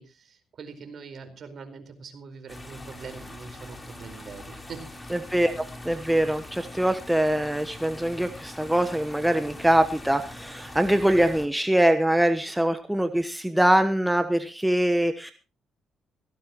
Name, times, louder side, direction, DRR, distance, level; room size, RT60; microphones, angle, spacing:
voice 1, 0.0-4.8, right 5 dB, 55° right, 7 dB, 4.6 m, -43 dB
sound 1, 2.5-11.5, left 1 dB, 20° left, 3.9 m, -42 dB
voice 2, 5.1-15.3, right 1 dB, 5° right, 8 dB, 1.1 m, -23 dB
17.5 x 16.5 x 3.0 m, 0.34 s
cardioid pair, 90°, 0 cm